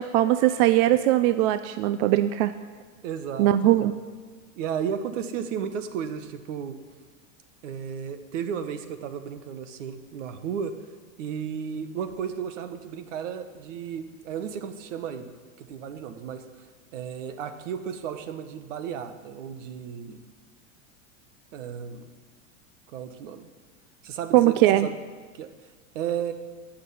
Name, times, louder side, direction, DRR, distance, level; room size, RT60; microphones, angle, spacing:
voice 1, 0.0-2.5 3.4-3.9 24.3-24.9, right 14 dB, 50° right, 12 dB, 0.5 m, -20 dB
voice 2, 3.0-3.9 4.6-6.8 7.6-10.7 11.2-15.3 15.6-16.4 16.9-20.2 21.5-22.1 22.9-23.5 24.0-24.9 25.3-25.5 25.9-26.3, right 7 dB, 75° right, 10 dB, 1.4 m, -34 dB
14.0 x 6.6 x 9.5 m, 1.4 s
supercardioid pair, 140°, 37 cm